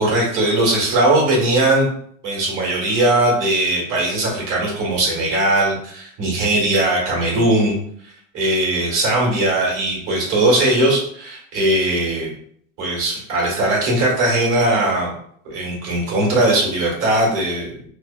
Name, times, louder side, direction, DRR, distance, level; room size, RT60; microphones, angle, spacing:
voice 1, 0.0-1.9 2.2-7.7 8.3-12.3 12.8-15.1 15.4-17.8, right 1 dB, 50° right, -3 dB, 1.4 m, -19 dB
3.1 x 2.1 x 2.3 m, 0.64 s
supercardioid pair, 115°, 41 cm